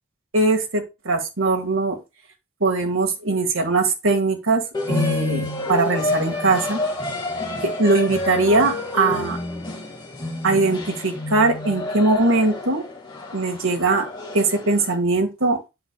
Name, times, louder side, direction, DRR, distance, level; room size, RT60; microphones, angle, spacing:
voice 1, 0.3-2.0 2.6-4.6 4.9-6.8 7.6-9.4 10.4-12.8 13.3-14.1 14.3-15.6, right 3 dB, 70° right, 3 dB, 1.7 m, -21 dB
sound 1, 4.7-15.0, left 2 dB, 20° left, 1.8 m, -29 dB
8.0 x 7.8 x 2.3 m, 0.25 s
head